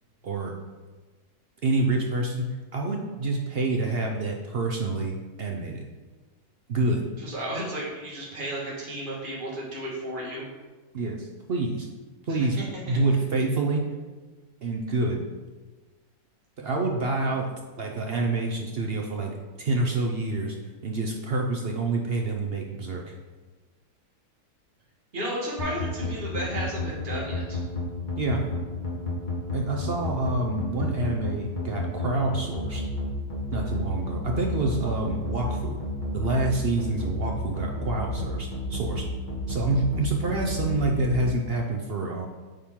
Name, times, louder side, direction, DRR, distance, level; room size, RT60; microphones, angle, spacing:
voice 1, 1.6-2.5 2.7-5.8 6.7-7.1 10.9-11.9 12.2-12.6 12.9-13.8 14.6-15.2 16.6-17.5 17.8-20.6 20.8-23.1 28.2-28.4 29.5-32.8 33.5-35.8 36.1-39.0 39.5-42.3, right 2 dB, 55° right, 1 dB, 0.7 m, -27 dB
voice 2, 7.2-10.5 12.3-13.0 25.1-27.6, right 1 dB, 35° right, -5 dB, 1.9 m, -33 dB
sound 1, 25.6-41.1, left 2 dB, 35° left, 1.2 m, -30 dB
8.6 x 4.4 x 3.7 m, 1.3 s
omnidirectional pair, 1.7 m